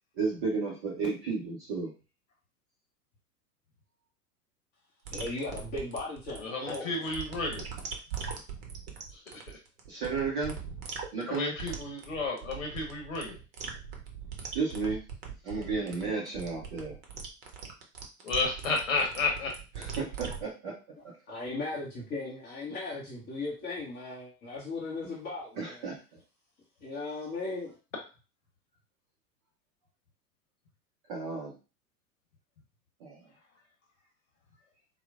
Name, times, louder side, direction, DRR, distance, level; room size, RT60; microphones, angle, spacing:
voice 1, 0.2-1.9 9.9-10.6 11.1-11.5 14.5-15.0 15.4-16.9 19.8-20.8 25.6-26.0 31.1-31.5 33.0-33.2, right 4 dB, 20° right, -4 dB, 0.4 m, -32 dB
sound 1, 5.0-20.4, right 6 dB, 40° right, 0.8 m, -41 dB
voice 2, 5.1-7.1 21.3-25.9 26.8-27.7, left 3 dB, 20° left, -6 dB, 0.6 m, -37 dB
voice 3, 6.4-7.6 11.3-13.4 18.2-19.5, left 3 dB, 55° left, 1 dB, 0.9 m, -31 dB
4.3 x 2.0 x 2.4 m, 0.32 s
figure-of-eight pair, 95°, 48 cm